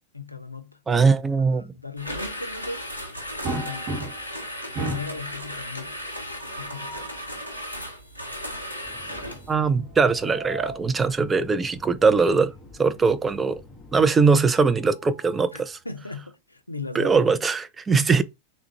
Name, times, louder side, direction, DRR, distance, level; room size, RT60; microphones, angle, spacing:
voice 1, 0.1-0.8 1.4-2.9 3.5-4.0 4.8-6.0 6.6-7.0 15.5-17.4, left 4 dB, 85° left, 0.4 m, -37 dB
voice 2, 0.9-1.7 9.5-12.5 12.8-13.6 13.9-15.8 16.9-18.2, right 4 dB, 15° right, 0.4 m, -21 dB
sound 1, 2.0-9.5, equal, 90° right, 0.8 m, -35 dB
sound 2, 3.4-4.4 4.7-5.2 6.4-7.2 9.9-10.9 12.3-12.5 12.9-13.0 14.5-15.7, right 2 dB, 40° right, 1.0 m, -35 dB
sound 3, 8.8-14.1, left 2 dB, 5° left, 1.5 m, -48 dB
3.5 x 2.1 x 3.0 m
figure-of-eight pair, 90°, 0 cm